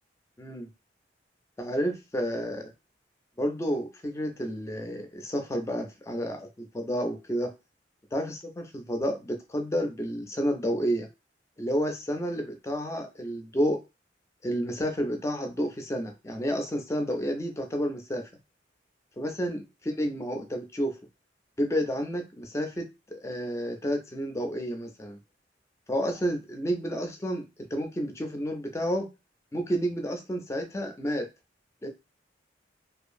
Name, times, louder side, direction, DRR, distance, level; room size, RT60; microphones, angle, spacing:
voice 1, 1.6-2.7 3.4-7.5 8.1-11.1 11.6-13.8 14.4-18.3 19.2-21.0 21.6-25.2 25.9-27.4 27.7-29.1 29.5-31.3 31.8-31.9, equal, 15° left, 0.3 m, -30 dB
2.5 x 2.4 x 2.5 m
head